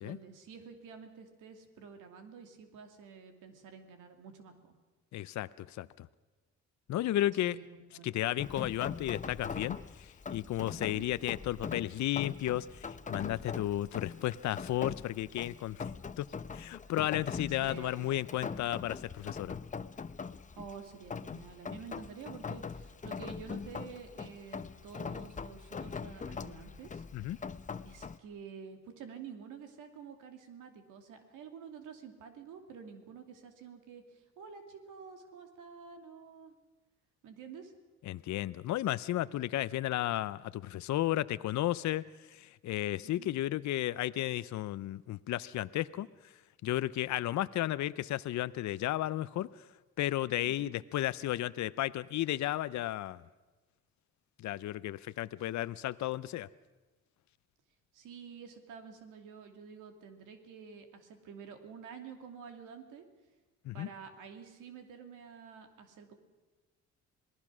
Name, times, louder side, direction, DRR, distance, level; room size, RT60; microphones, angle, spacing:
voice 1, 0.0-4.7 7.4-7.7 7.9-8.2 10.8-11.0 17.5-18.3 20.6-27.5 27.8-36.5 37.2-37.7 43.0-43.3 50.4-50.7 57.9-63.1 63.7-66.1, right 6 dB, 90° right, 6 dB, 2.5 m, -49 dB
voice 2, 5.1-6.1 6.9-7.6 8.0-15.8 16.2-16.3 16.5-19.6 27.1-27.4 38.0-46.1 46.6-49.5 50.0-53.2 54.4-56.5 63.6-63.9, left 14 dB, 65° left, 16 dB, 0.6 m, -33 dB
Rain, 8.4-28.2, left 5 dB, 25° left, 0.8 m, -42 dB
27.0 x 19.0 x 6.2 m, 1.2 s
cardioid pair, 90°, 30 cm